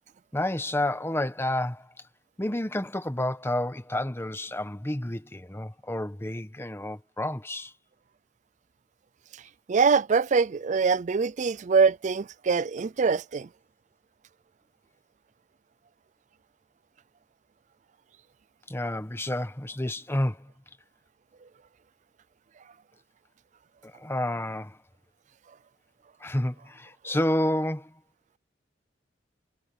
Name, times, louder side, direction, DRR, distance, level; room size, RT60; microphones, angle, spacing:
voice 1, 0.3-1.9 2.4-7.7 18.7-20.5 23.8-24.8 26.2-27.9, left 1 dB, 15° left, 1.2 m, -30 dB
voice 2, 9.7-13.5, right 5 dB, 40° right, 0.4 m, -23 dB
head